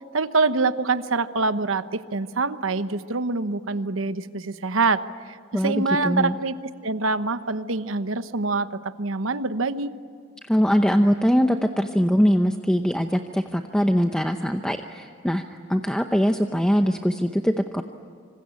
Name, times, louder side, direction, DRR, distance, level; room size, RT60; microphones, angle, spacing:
voice 1, 0.1-5.0 5.3-6.6 6.8-9.9, right 3 dB, 85° right, 11 dB, 1.1 m, -25 dB
voice 2, 5.5-6.4 10.5-17.8, equal, 5° left, 5 dB, 0.7 m, -22 dB
27.0 x 26.0 x 8.5 m, 2.3 s
head